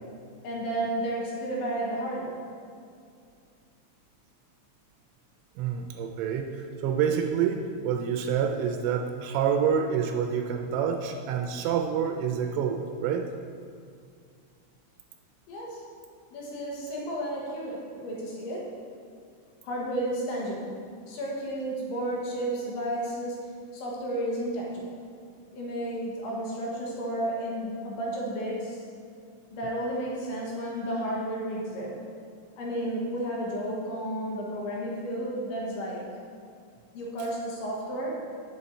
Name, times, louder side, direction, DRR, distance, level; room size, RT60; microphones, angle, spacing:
voice 1, 0.4-2.4 15.5-15.8 16.3-18.7 19.6-20.8 21.1-23.4 23.7-24.8 25.5-28.8 29.5-32.0 32.6-36.0 36.9-38.2, right 1 dB, 65° left, -3 dB, 3.0 m, -32 dB
voice 2, 5.6-13.3, right 7 dB, 85° right, 4 dB, 3.0 m, -27 dB
8.9 x 7.6 x 4.1 m, 2.3 s
omnidirectional pair, 5.7 m